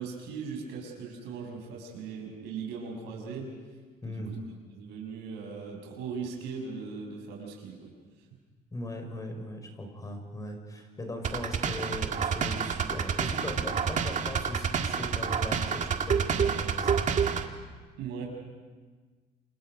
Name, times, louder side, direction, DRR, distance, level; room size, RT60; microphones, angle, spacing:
voice 1, 0.0-3.5 4.1-4.2 4.7-7.9 18.0-18.3, right 5 dB, 85° right, 1 dB, 6.8 m, -39 dB
voice 2, 4.0-4.3 8.7-17.1, left 1 dB, 20° left, 4 dB, 5.4 m, -39 dB
sound 1, 11.2-17.5, right 6 dB, 45° right, 1.8 m, -28 dB
29.5 x 27.0 x 5.3 m, 1.4 s
cardioid pair, 110°, 17 cm